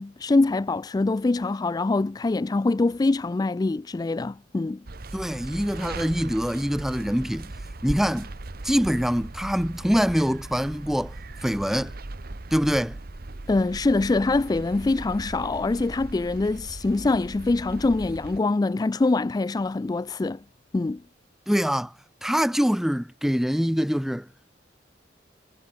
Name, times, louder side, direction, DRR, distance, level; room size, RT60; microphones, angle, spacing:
voice 1, 0.0-4.8 13.5-20.4 20.7-21.0, left 3 dB, 20° left, 0.3 m, -24 dB
sound 1, 4.9-18.4, right 2 dB, 55° right, 1.1 m, -39 dB
voice 2, 5.1-7.5 7.8-8.3 8.6-11.1 11.4-11.9 12.5-13.0 21.5-21.9 22.2-24.3, equal, ahead, 0.8 m, -24 dB
head